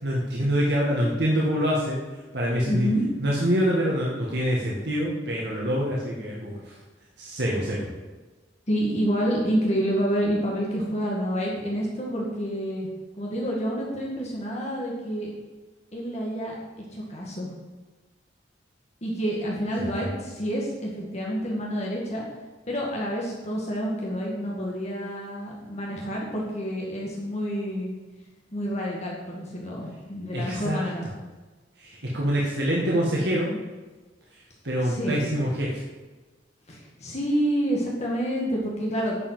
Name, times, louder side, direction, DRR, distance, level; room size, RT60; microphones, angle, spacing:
voice 1, 0.0-2.0 2.3-2.9 3.2-6.8 7.2-7.9 19.8-20.1 30.3-30.9 31.8-33.5 34.3-35.8, equal, 60° right, -4 dB, 1.8 m, -25 dB
voice 2, 2.7-3.1 8.7-12.9 13.2-15.3 15.9-17.5 19.0-22.2 22.7-28.0 28.5-31.1 34.8-35.2 36.7-39.2, equal, 35° left, -3 dB, 1.9 m, -28 dB
10.5 x 5.6 x 7.5 m, 1.3 s
head